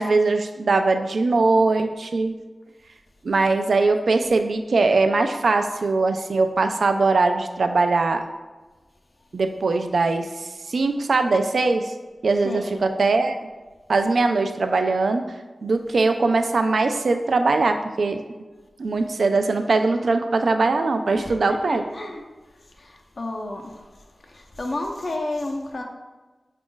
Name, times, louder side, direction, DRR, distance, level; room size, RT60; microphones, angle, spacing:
voice 1, 0.0-2.3 3.2-8.3 9.3-11.9 12.2-13.4 13.9-15.2 15.6-18.2 18.8-21.9, right 3 dB, 80° right, 7 dB, 0.3 m, -21 dB
voice 2, 12.4-12.8 21.2-22.2 22.8-23.8 24.2-25.8, left 2 dB, 60° left, 1 dB, 0.7 m, -31 dB
5.0 x 2.4 x 3.8 m, 1.2 s
wide cardioid pair, 60°, 0 cm